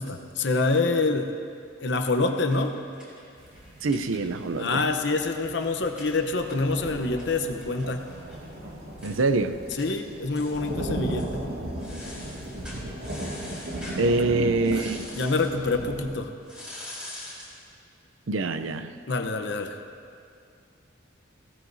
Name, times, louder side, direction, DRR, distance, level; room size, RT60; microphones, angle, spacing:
voice 1, 0.0-1.3 1.8-2.7 4.6-8.0 9.8-11.5 14.2-14.3 14.7-14.9 15.2-16.3 19.1-19.8, left 3 dB, 60° left, 6 dB, 0.9 m, -26 dB
sound 1, 1.9-4.6 4.9-5.0 5.2-8.4 8.7-8.8 9.0-9.2 9.7-9.9 10.3-10.7 11.1-11.3 11.8-14.0 14.6-15.5 16.4-17.6, left 1 dB, 5° right, 4.3 m, -44 dB
sound 2, 3.4-16.1, right 1 dB, 55° right, 2.1 m, -36 dB
voice 2, 3.8-4.8 9.0-9.6 14.0-15.1 18.3-18.9, right 3 dB, 80° right, 10 dB, 0.6 m, -25 dB
19.5 x 16.5 x 2.7 m, 2.4 s
head